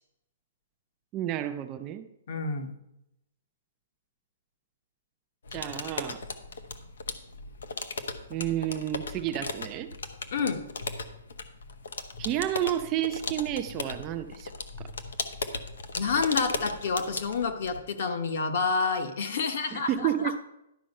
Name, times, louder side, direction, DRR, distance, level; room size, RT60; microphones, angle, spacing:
voice 1, 1.1-2.1 5.5-6.2 8.3-9.9 12.2-14.5 14.8-14.9 19.7-20.4, right 12 dB, 20° right, 8 dB, 0.3 m, -30 dB
voice 2, 2.3-2.7 10.3-10.6 16.0-20.1, left 4 dB, 45° left, 6 dB, 1.0 m, -28 dB
sound 1, 5.5-17.8, left 4 dB, 85° left, 1.0 m, -37 dB
11.5 x 5.6 x 5.3 m, 0.84 s
hypercardioid pair, 175°, 0 cm